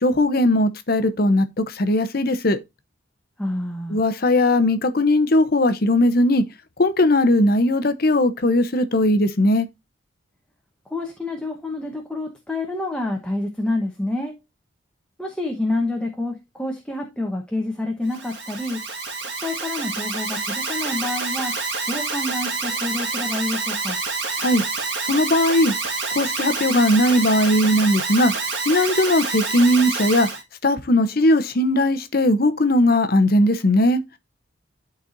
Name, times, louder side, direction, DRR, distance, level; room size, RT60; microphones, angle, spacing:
voice 1, 0.0-2.6 3.9-6.4 6.8-9.7 24.4-24.6 25.1-25.7 26.1-28.3 28.7-30.3 30.6-34.0, left 1 dB, 50° left, 0.8 m, -18 dB
voice 2, 3.4-4.0 10.9-14.4 15.2-18.8 19.2-24.0, left 2 dB, 5° left, 1.0 m, -28 dB
Alarm, 18.1-30.4, right 4 dB, 55° right, 1.8 m, -27 dB
12.0 x 4.1 x 2.6 m
head